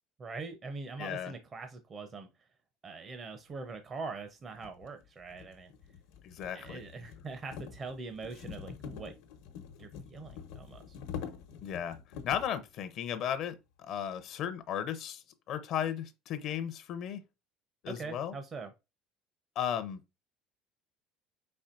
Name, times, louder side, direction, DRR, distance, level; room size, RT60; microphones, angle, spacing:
voice 1, 0.2-2.3 2.8-5.7 6.5-9.1 9.8-11.0 17.9-18.7, right 4 dB, 30° right, 0.6 m, -43 dB
voice 2, 1.0-1.3 6.2-6.8 11.6-12.0 12.2-17.2 17.8-18.3 19.6-20.0, left 9 dB, 50° left, 0.6 m, -35 dB
sound 1, 3.7-3.8 4.5-12.6, left 7 dB, 90° left, 0.9 m, -46 dB
4.7 x 4.3 x 2.4 m
cardioid pair, 150°, 0 cm